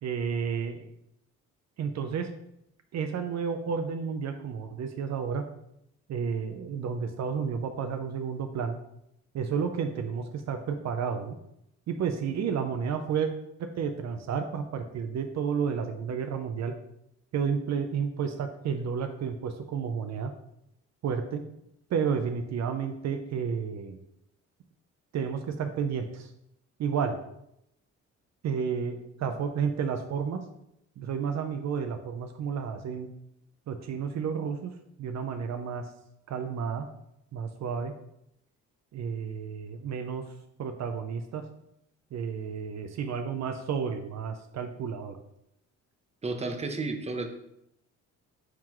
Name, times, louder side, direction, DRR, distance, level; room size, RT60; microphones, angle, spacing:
voice 1, 0.0-0.9 1.8-2.3 2.9-5.4 6.1-8.8 9.3-11.4 11.9-13.3 13.6-16.7 17.3-20.3 21.0-21.4 21.9-24.0 25.1-26.3 26.8-27.2 28.4-30.4 31.0-33.1 33.7-34.7 35.0-35.9 36.3-36.9 37.3-37.9 38.9-40.2 40.6-41.5 42.1-45.2, right 6 dB, 60° right, 7 dB, 0.7 m, -31 dB
voice 2, 46.2-47.3, right 3 dB, 20° right, 5 dB, 0.8 m, -32 dB
9.3 x 3.8 x 3.1 m, 0.80 s
cardioid pair, 90°, 30 cm